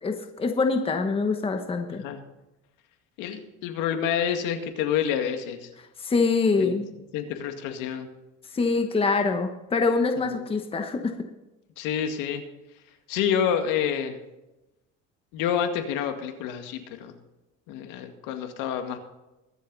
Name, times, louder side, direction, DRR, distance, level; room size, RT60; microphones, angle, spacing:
voice 1, 0.0-2.0 6.0-6.9 8.5-11.1, left 4 dB, 20° left, 5 dB, 1.1 m, -24 dB
voice 2, 1.9-2.2 3.2-5.7 6.6-6.8 7.1-8.1 10.2-10.5 11.8-12.4 13.1-14.2 15.3-17.1 17.7-19.0, left 8 dB, 85° left, 6 dB, 2.1 m, -28 dB
22.5 x 7.7 x 4.1 m, 0.98 s
cardioid pair, 140°, 31 cm